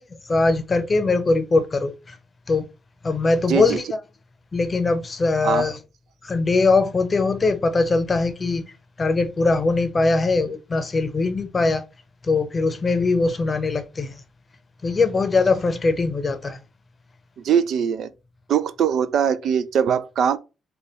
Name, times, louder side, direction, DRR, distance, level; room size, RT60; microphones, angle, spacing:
voice 1, 0.3-2.2 2.5-2.6 3.0-4.0 4.5-5.8 6.2-8.6 9.0-11.8 12.2-14.2 14.8-16.6, left 3 dB, 30° left, 0.7 m, -21 dB
voice 2, 3.5-3.8 5.4-5.7 17.4-18.1 18.5-20.4, right 8 dB, 70° right, 0.3 m, -21 dB
3.9 x 2.3 x 3.4 m
cardioid pair, 90°, 0 cm